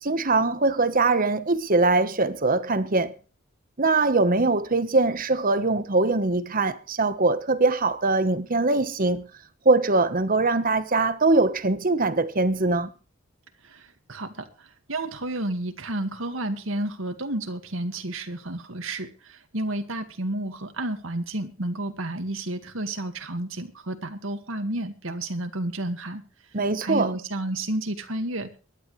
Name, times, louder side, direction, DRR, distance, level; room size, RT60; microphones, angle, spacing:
voice 1, 0.0-3.1 3.8-9.3 9.6-12.9 26.5-27.1, right 3 dB, 45° right, 1.2 m, -22 dB
voice 2, 13.6-26.2 26.8-28.6, right 1 dB, 70° right, 2.0 m, -31 dB
23.0 x 11.0 x 3.3 m
head